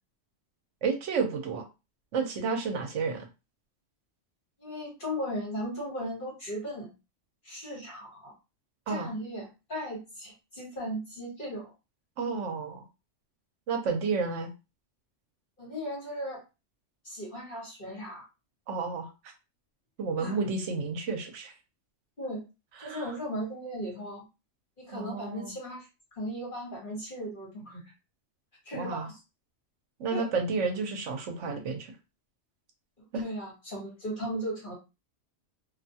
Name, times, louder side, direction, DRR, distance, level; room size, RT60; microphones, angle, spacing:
voice 1, 0.8-1.6 2.1-3.3 8.9-9.1 12.2-12.9 13.7-14.5 18.7-19.1 20.0-21.5 22.8-23.1 24.9-25.5 28.7-29.1 30.0-31.9 33.1-33.2, right 4 dB, 75° right, 4 dB, 1.0 m, -31 dB
voice 2, 4.6-6.9 7.4-8.3 8.9-11.7 15.6-16.4 17.0-18.2 20.2-20.4 22.2-22.4 22.8-24.2 24.8-27.9 28.6-29.2 30.1-30.3 33.2-34.7, equal, 45° left, -3 dB, 1.3 m, -37 dB
2.6 x 2.3 x 2.7 m, 0.27 s
omnidirectional pair, 1.3 m